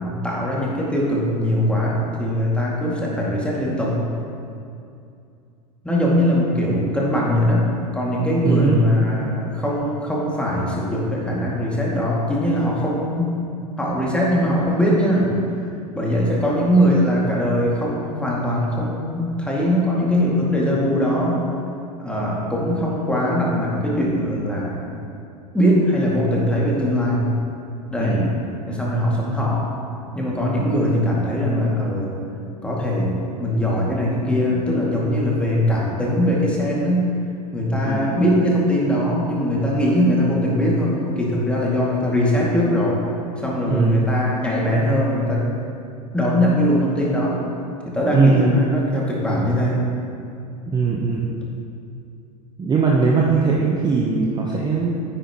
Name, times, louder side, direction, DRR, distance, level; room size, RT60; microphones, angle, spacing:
voice 1, 0.0-4.0 5.8-7.7 7.9-13.4 13.8-15.3 15.9-21.4 22.0-24.9 25.5-27.3 27.9-28.2 28.7-29.6 30.1-32.1 32.6-37.1 37.5-43.0 43.4-45.4 46.1-47.4 47.9-49.8, equal, 5° left, -5 dB, 2.2 m, -21 dB
voice 2, 8.4-8.8 28.0-28.3 37.8-38.1 43.7-44.0 48.1-48.6 50.7-51.3 52.6-55.0, right 4 dB, 20° right, -3 dB, 0.9 m, -20 dB
10.0 x 9.0 x 3.0 m, 2.5 s
figure-of-eight pair, 85°, 21 cm